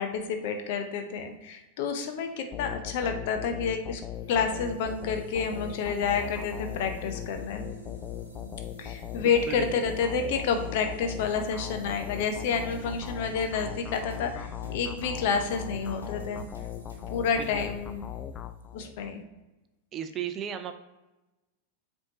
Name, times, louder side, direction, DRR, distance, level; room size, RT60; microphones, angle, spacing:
voice 1, 0.0-4.0 4.3-7.6 8.8-16.4 17.1-18.1 18.7-19.2, left 6 dB, 50° left, 6 dB, 0.8 m, -29 dB
sound 1, 2.5-19.1, left 10 dB, 30° left, 0.3 m, -39 dB
sound 2, 4.1-18.8, right 1 dB, 90° left, 1.2 m, -48 dB
voice 2, 9.2-9.9 17.4-17.7 19.9-20.7, right 8 dB, 30° right, 9 dB, 0.5 m, -36 dB
sound 3, 12.2-17.8, left 1 dB, 70° left, 1.1 m, -49 dB
7.4 x 4.5 x 2.9 m, 1.1 s
figure-of-eight pair, 90°, 0 cm